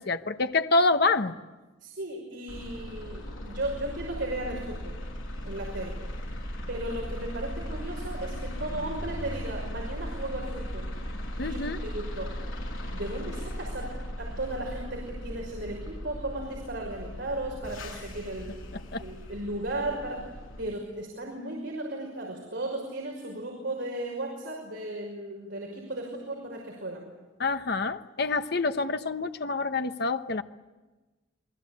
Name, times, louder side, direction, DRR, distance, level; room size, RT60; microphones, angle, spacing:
voice 1, 0.0-1.3 11.4-11.8 18.9-19.0 27.4-30.4, left 3 dB, 55° left, 9 dB, 1.0 m, -27 dB
voice 2, 1.8-5.0 5.4-6.0 6.7-10.9 11.4-12.3 12.9-18.6 19.0-20.3 20.6-27.0, right 1 dB, 65° right, -1 dB, 5.7 m, -35 dB
sound 1, 2.5-20.6, equal, 80° left, 7.7 m, -37 dB
28.5 x 21.0 x 8.6 m, 1.2 s
head